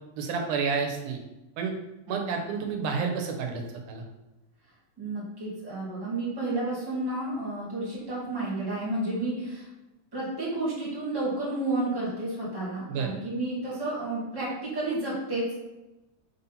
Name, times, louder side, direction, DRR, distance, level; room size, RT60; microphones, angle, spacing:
voice 1, 0.2-1.2 1.6-1.8 2.1-3.6 3.9-4.0 12.9-13.1, right 5 dB, 90° right, 3 dB, 2.4 m, -29 dB
voice 2, 5.0-9.7 10.1-15.5, right 2 dB, 10° right, -7 dB, 1.8 m, -31 dB
5.0 x 4.1 x 5.5 m, 1.0 s
omnidirectional pair, 3.5 m